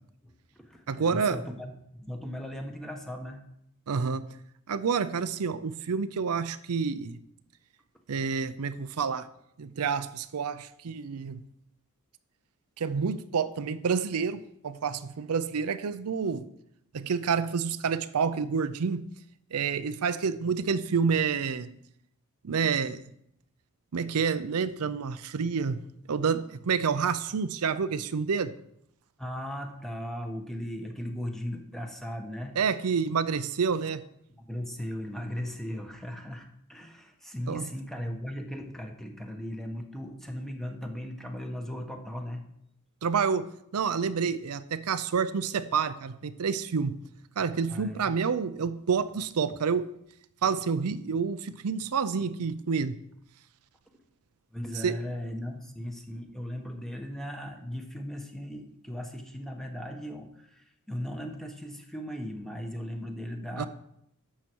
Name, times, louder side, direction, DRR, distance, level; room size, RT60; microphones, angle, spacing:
voice 1, 0.2-3.4 29.2-32.5 34.3-42.4 47.7-48.1 54.5-63.7, equal, ahead, 3 dB, 1.2 m, -37 dB
voice 2, 0.9-1.4 3.9-4.3 4.7-7.2 8.1-9.3 9.6-11.4 12.8-16.4 16.9-19.0 19.5-21.7 22.4-23.0 23.9-25.8 26.1-28.6 32.6-34.0 37.5-37.6 43.0-43.5 43.7-47.0 47.4-49.8 50.4-53.0 54.8-55.0 63.6-63.7, right 6 dB, 80° right, 12 dB, 0.5 m, -28 dB
11.5 x 7.3 x 4.6 m, 0.75 s
head